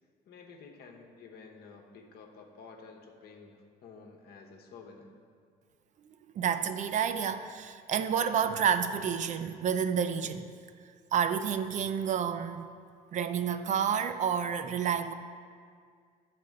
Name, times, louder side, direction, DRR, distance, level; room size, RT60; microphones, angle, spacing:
voice 1, 0.3-5.1, left 4 dB, 70° left, 1.0 m, -51 dB
voice 2, 6.3-10.5 11.1-12.7 13.1-15.1, right 7 dB, 45° right, 0.4 m, -29 dB
8.2 x 4.1 x 6.4 m
cardioid pair, 110°, 17 cm